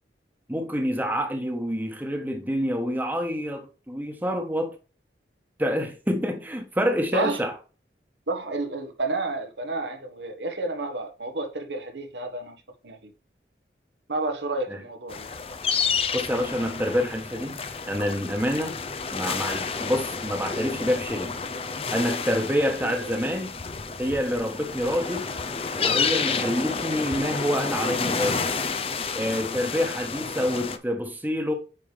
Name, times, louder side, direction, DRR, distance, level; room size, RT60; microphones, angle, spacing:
voice 1, 0.5-4.7 5.6-7.5 14.7-14.8 16.1-17.6 17.9-18.8 19.1-21.4 21.9-23.5 24.0-25.3 25.7-28.5 29.1-31.5, equal, 10° right, 1.2 m, -27 dB
voice 2, 7.1-7.5 8.3-13.1 14.1-15.3 22.8-22.9, right 2 dB, 85° right, 1.4 m, -31 dB
sound 1, 15.1-30.8, left 5 dB, 35° left, 0.6 m, -30 dB
9.0 x 5.0 x 3.4 m
head